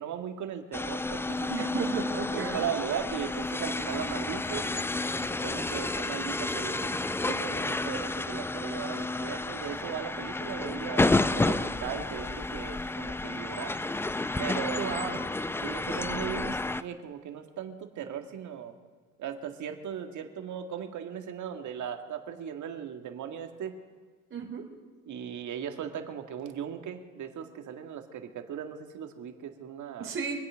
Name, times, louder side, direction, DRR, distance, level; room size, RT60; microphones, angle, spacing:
voice 1, 0.0-1.7 2.3-4.7 5.2-13.7 14.4-14.9 15.6-18.7 19.2-23.8 25.1-30.1, right 8 dB, 50° right, 5 dB, 2.0 m, -38 dB
sound 1, 0.7-16.8, left 2 dB, 5° left, 0.4 m, -31 dB
voice 2, 1.5-2.7 14.7-15.2 24.3-24.7 30.0-30.3, right 6 dB, 30° right, -1 dB, 3.5 m, -34 dB
24.0 x 8.4 x 6.3 m, 1.5 s
supercardioid pair, 80°, 38 cm